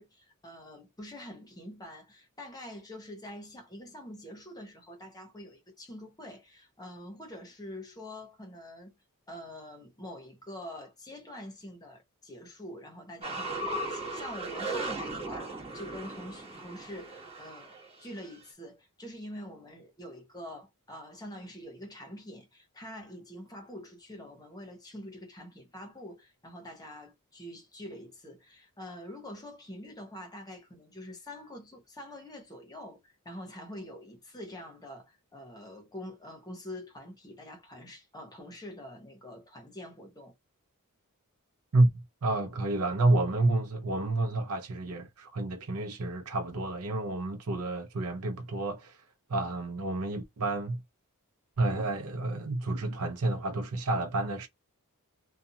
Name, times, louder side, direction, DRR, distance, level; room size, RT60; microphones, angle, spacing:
voice 1, 0.0-9.0 9.3-40.3, left 1 dB, 15° left, 1.0 m, -45 dB
sound 1, 13.2-17.9 18.3-18.4, right 2 dB, 25° right, 1.3 m, -37 dB
voice 2, 41.7-49.0 49.3-50.8 51.6-54.5, right 2 dB, 70° right, 0.6 m, -29 dB
2.7 x 2.3 x 2.7 m
head